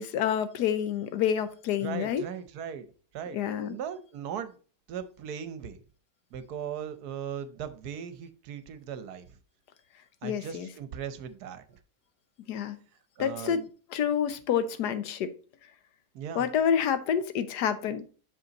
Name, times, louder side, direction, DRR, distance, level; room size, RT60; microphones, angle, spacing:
voice 1, 0.0-2.2 3.3-3.8 10.2-10.7 12.5-12.8 13.2-13.6 13.9-15.3 16.3-18.1, left 8 dB, 80° left, 1.3 m, -28 dB
voice 2, 1.8-2.9 3.1-3.4 3.7-4.6 4.9-5.8 6.3-9.3 10.2-11.8 13.2-13.6 16.1-16.5, right 8 dB, 75° right, 1.2 m, -38 dB
6.2 x 5.3 x 4.0 m
omnidirectional pair, 1.7 m